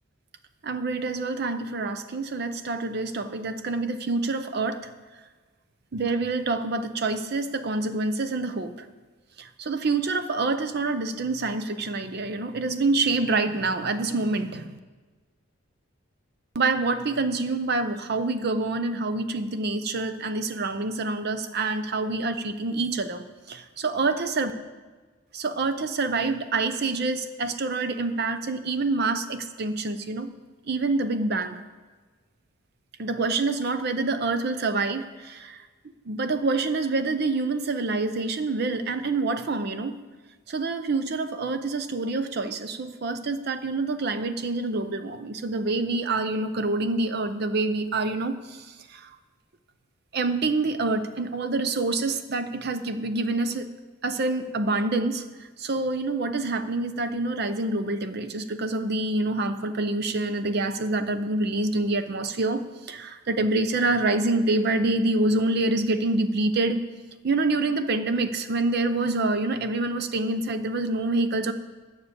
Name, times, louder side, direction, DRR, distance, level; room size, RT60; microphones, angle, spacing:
voice 1, 0.6-4.9 5.9-8.7 9.4-14.8 16.5-24.5 25.3-30.3 30.6-31.6 33.0-35.6 36.1-40.0 40.5-49.1 50.1-53.7 54.0-55.2 55.6-66.8 67.2-71.5, right 3 dB, 50° right, 10 dB, 0.5 m, -26 dB
10.0 x 7.3 x 8.1 m, 1.4 s
head